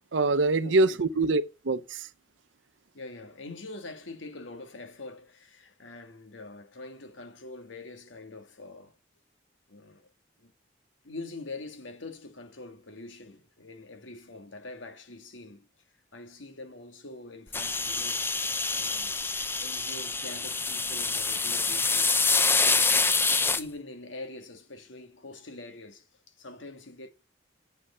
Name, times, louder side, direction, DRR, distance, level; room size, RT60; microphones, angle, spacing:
voice 1, 0.0-2.1, right 3 dB, 80° right, 0.7 m, -25 dB
voice 2, 0.6-1.2 2.9-9.0 9.7-10.1 10.4-10.5 11.0-15.9 16.1-18.4 18.7-19.2 19.5-23.0 23.5-27.1, left 2 dB, 85° left, 1.6 m, -44 dB
sound 1, 17.5-23.6, left 4 dB, 10° left, 0.5 m, -26 dB
7.9 x 6.6 x 7.2 m
head